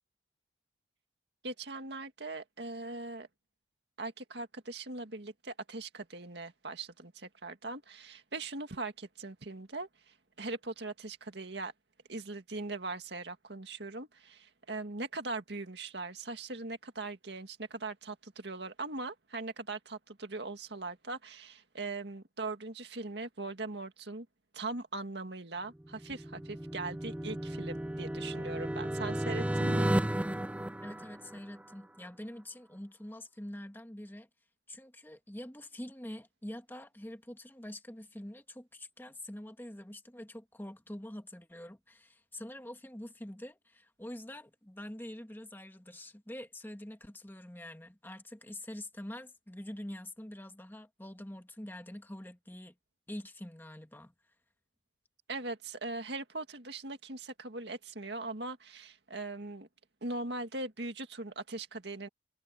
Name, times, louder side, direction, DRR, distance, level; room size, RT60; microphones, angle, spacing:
voice 1, 1.4-3.3 4.0-11.7 12.1-24.3 24.5-29.9 55.3-59.7 60.0-62.1, right 3 dB, 65° right, 2.1 m, -40 dB
sound 1, 25.9-31.7, right 1 dB, 5° right, 0.3 m, -33 dB
voice 2, 30.8-34.3 34.7-52.7 53.1-54.1, left 1 dB, 10° left, 1.7 m, -45 dB
head